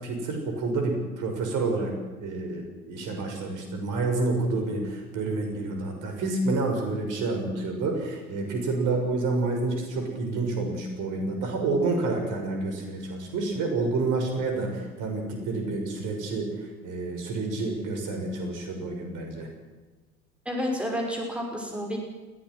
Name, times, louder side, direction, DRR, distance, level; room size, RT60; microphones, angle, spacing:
voice 1, 0.0-1.9 2.2-19.5, right 3 dB, 45° right, 3 dB, 6.5 m, -29 dB
voice 2, 20.5-22.0, equal, 5° right, 0 dB, 5.5 m, -30 dB
21.5 x 17.5 x 7.9 m, 1.3 s
figure-of-eight pair, 75°, 44 cm